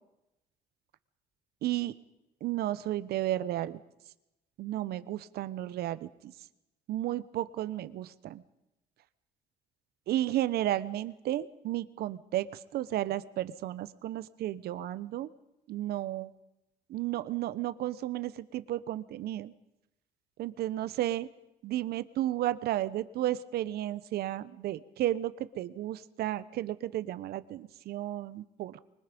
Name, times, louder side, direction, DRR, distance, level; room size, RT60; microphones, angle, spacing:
voice 1, 1.6-1.9 2.4-3.8 4.6-6.3 6.9-8.4 10.1-15.3 15.7-16.3 16.9-19.5 20.4-21.3 21.6-28.8, right 13 dB, 70° right, 15 dB, 1.0 m, -33 dB
24.5 x 20.5 x 5.3 m, 0.92 s
cardioid pair, 110°, 17 cm